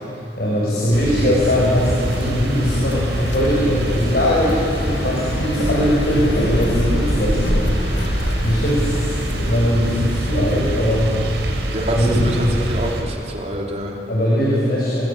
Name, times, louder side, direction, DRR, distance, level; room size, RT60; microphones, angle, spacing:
voice 1, 0.1-11.2 11.9-12.3 14.1-15.1, equal, 65° left, -5 dB, 6.2 m, -20 dB
sound 1, 0.9-13.0, equal, 85° right, 4.4 m, -24 dB
sound 2, 1.4-11.0, left 2 dB, 85° left, 1.7 m, -33 dB
voice 2, 11.7-13.9, right 1 dB, 40° right, -2 dB, 3.9 m, -25 dB
27.5 x 19.5 x 8.8 m, 2.9 s
head